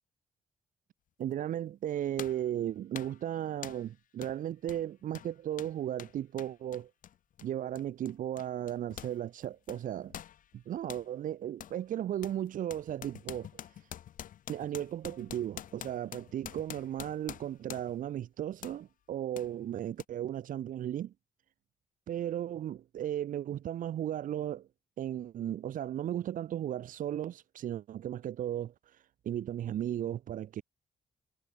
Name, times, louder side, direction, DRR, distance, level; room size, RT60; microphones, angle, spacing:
voice 1, 1.2-6.9 7.4-10.1 10.5-13.6 14.5-21.1 22.1-24.7 25.0-28.7 29.2-30.6, right 11 dB, 80° right, 2.6 m, -35 dB
sound 1, 1.3-1.4 2.2-2.5 2.9-3.2 3.6-3.9 4.2-4.4 4.6-9.2 9.4-11.1 11.6-11.8 12.2-18.1 18.6-18.8 19.4-19.5 20.0-20.1, left 11 dB, 80° left, 7.0 m, -47 dB
cardioid pair, 70°, 14 cm